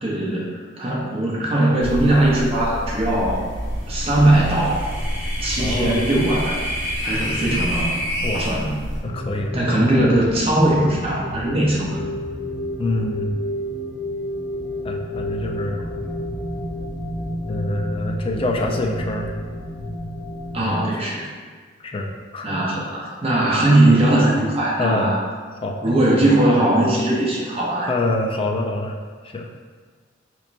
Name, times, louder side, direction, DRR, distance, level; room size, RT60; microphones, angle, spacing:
voice 1, 0.0-3.5 3.9-4.9 5.4-6.6 7.0-7.9 8.3-8.8 9.5-12.0 20.5-21.3 22.4-25.2 25.8-27.9, right 1 dB, 30° right, -4 dB, 0.7 m, -19 dB
sound 1, 1.8-9.0, equal, 70° right, 1.0 m, -29 dB
sound 2, 4.2-8.5, equal, 10° right, 1.1 m, -29 dB
voice 2, 5.6-6.1 8.2-8.4 9.0-9.5 12.8-13.4 14.8-15.9 17.5-19.3 20.6-20.9 21.8-22.5 24.8-25.1 25.6-25.8 27.9-29.0 29.2-29.5, left 2 dB, 30° left, 1 dB, 0.3 m, -25 dB
sound 3, 9.0-20.6, left 1 dB, 45° left, 1.4 m, -30 dB
4.2 x 3.0 x 2.6 m, 1.5 s
head